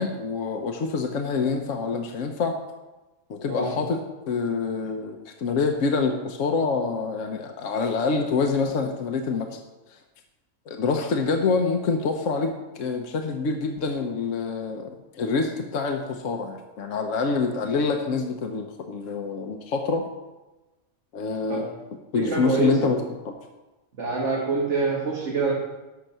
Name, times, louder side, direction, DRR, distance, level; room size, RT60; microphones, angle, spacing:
voice 1, 0.0-2.6 3.3-4.0 4.3-9.6 9.9-10.0 10.7-20.1 21.1-21.7 22.1-23.0 23.2-23.3, left 4 dB, 80° left, 4 dB, 1.2 m, -26 dB
voice 2, 22.1-22.9 24.0-25.6, right 4 dB, 65° right, -3 dB, 1.9 m, -25 dB
12.0 x 5.8 x 6.7 m, 1.1 s
omnidirectional pair, 1.3 m